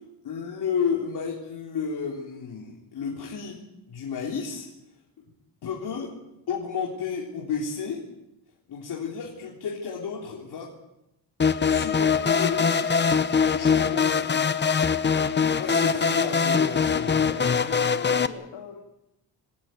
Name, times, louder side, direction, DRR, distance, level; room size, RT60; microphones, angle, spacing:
voice 1, 0.2-3.6 3.9-4.7 5.6-6.2 6.5-8.0 8.7-10.7 11.6-14.4 15.5-17.3, left 6 dB, 60° left, -3 dB, 4.0 m, -32 dB
sound 1, 11.4-18.3, left 6 dB, 25° left, 0.9 m, -22 dB
voice 2, 17.0-18.8, left 7 dB, 80° left, 1 dB, 2.8 m, -40 dB
26.5 x 15.0 x 9.4 m, 0.89 s
cardioid pair, 155°, 44 cm